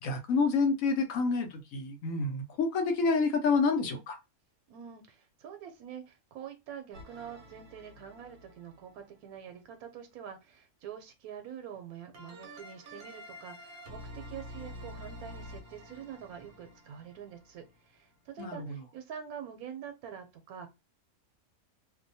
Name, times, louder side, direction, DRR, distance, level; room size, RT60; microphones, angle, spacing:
voice 1, 0.0-4.2 18.4-18.8, left 4 dB, 70° left, 1.0 m, -28 dB
voice 2, 4.7-20.7, right 8 dB, 85° right, 1.0 m, -46 dB
sound 1, 6.9-9.1 12.1-17.8, equal, 55° right, 0.7 m, -48 dB
2.8 x 2.1 x 2.6 m
omnidirectional pair, 1.5 m